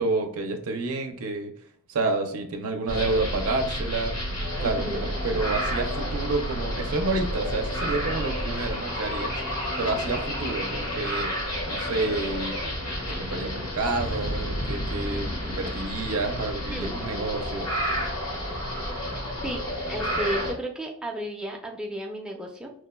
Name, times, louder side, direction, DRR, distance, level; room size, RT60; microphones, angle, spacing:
voice 1, 0.0-1.5 1.9-4.1 4.6-9.3 9.8-11.3 11.7-12.5 13.2-17.7, right 3 dB, 75° right, 4 dB, 0.5 m, -29 dB
sound 1, 2.9-20.5, equal, 70° left, 1.1 m, -31 dB
Alarm, 2.9-8.7, right 1 dB, 40° right, 0.7 m, -34 dB
voice 2, 4.6-5.1 16.7-17.0 19.4-19.6 19.9-22.7, right 1 dB, 5° right, 0 dB, 0.5 m, -33 dB
sound 2, 13.9-19.4, equal, 55° left, 0.6 m, -37 dB
4.6 x 2.1 x 2.2 m, 0.64 s
head